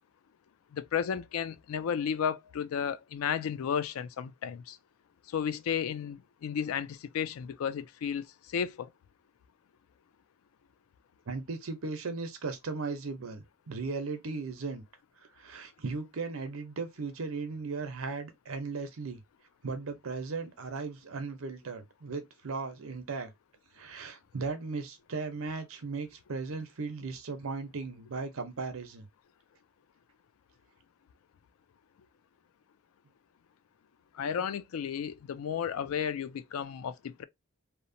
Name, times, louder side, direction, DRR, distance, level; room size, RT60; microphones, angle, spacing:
voice 1, 0.7-4.8 5.3-8.9 34.1-37.2, left 7 dB, 85° left, 0.3 m, -33 dB
voice 2, 11.3-14.8 15.4-19.2 19.6-23.3 23.7-29.1, right 4 dB, 80° right, 0.7 m, -37 dB
2.9 x 2.1 x 2.6 m
head